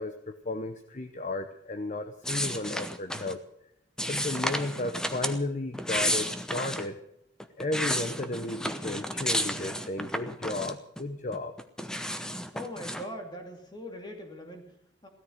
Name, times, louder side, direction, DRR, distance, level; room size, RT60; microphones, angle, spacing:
voice 1, 0.0-3.4 4.1-7.0 7.6-11.6, left 2 dB, 40° left, 8 dB, 0.8 m, -34 dB
sound 1, 2.2-3.4 4.0-5.4 5.7-6.9 7.4-11.0 11.3-13.1, equal, 5° left, 0.9 m, -32 dB
voice 2, 12.5-15.1, equal, 25° left, 3 dB, 2.7 m, -41 dB
16.5 x 13.5 x 6.5 m, 0.74 s
head